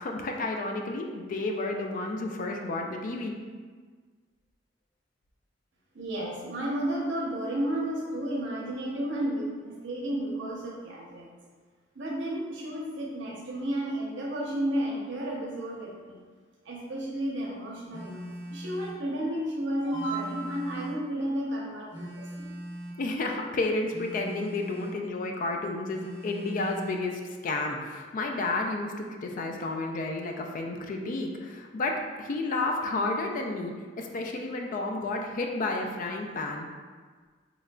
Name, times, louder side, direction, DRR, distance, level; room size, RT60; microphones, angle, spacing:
voice 1, 0.0-3.3 23.0-36.7, left 2 dB, 45° left, 2 dB, 0.3 m, -31 dB
voice 2, 5.9-11.3 11.9-16.2 16.7-22.5, right 1 dB, 70° right, -3 dB, 0.8 m, -32 dB
Telephone, 17.9-19.0 19.9-21.1 21.9-23.1 23.9-25.0 25.9-27.0, equal, 15° right, 0.7 m, -41 dB
3.7 x 3.1 x 2.2 m, 1.5 s
head